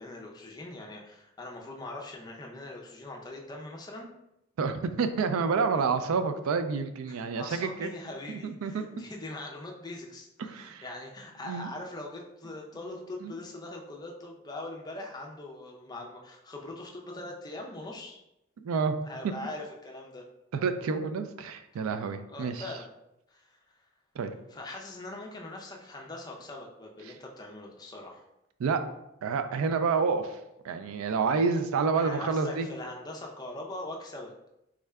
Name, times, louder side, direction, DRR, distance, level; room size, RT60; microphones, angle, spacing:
voice 1, 0.0-4.1 7.1-18.2 19.0-20.2 22.3-22.9 23.3-23.6 24.5-28.3 31.9-34.3, left 2 dB, 20° left, 0 dB, 0.4 m, -42 dB
voice 2, 4.6-7.9 8.3-8.9 10.4-10.8 11.4-11.7 13.2-13.4 18.6-19.0 20.5-22.6 24.2-24.3 27.1-27.2 28.6-28.8 29.2-30.4 30.6-32.7, right 5 dB, 80° right, 9 dB, 0.3 m, -29 dB
3.6 x 2.2 x 3.4 m, 0.85 s
head